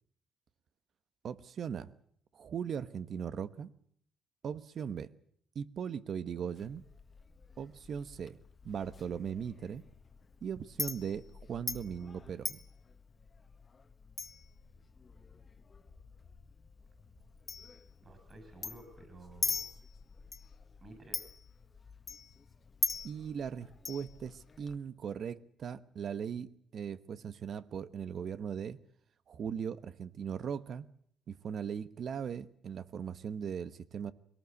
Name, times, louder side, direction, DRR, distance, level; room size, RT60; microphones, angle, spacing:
voice 1, 1.2-1.9 2.3-3.7 4.4-5.1 5.5-6.8 7.6-8.4 8.6-9.8 10.4-12.6 23.0-28.8 29.3-30.9 31.3-34.1, right 7 dB, 60° right, 15 dB, 1.1 m, -39 dB
Chink clink, 6.5-24.8, left 5 dB, 35° left, 1.6 m, -43 dB
voice 2, 18.0-19.7 20.8-21.3, right 2 dB, 35° right, 7 dB, 6.3 m, -53 dB
22.0 x 18.5 x 8.3 m, 0.64 s
cardioid pair, 90°, 0 cm